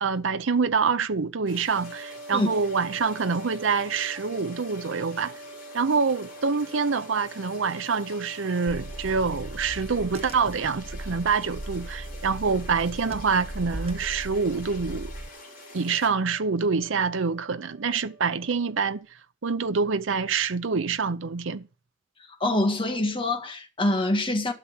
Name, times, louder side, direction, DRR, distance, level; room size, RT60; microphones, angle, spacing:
voice 1, 0.0-5.4 5.7-15.1 15.7-19.1 19.4-21.7, right 5 dB, 85° right, 0.7 m, -26 dB
sound 1, 1.5-16.1, left 3 dB, 45° left, 4.5 m, -47 dB
sound 2, 1.7-19.0, right 2 dB, 65° right, 4.1 m, -46 dB
Car / Engine, 8.7-15.3, right 1 dB, 30° right, 1.0 m, -38 dB
voice 2, 22.4-24.5, left 1 dB, 25° left, 1.8 m, -25 dB
12.0 x 6.0 x 7.2 m
head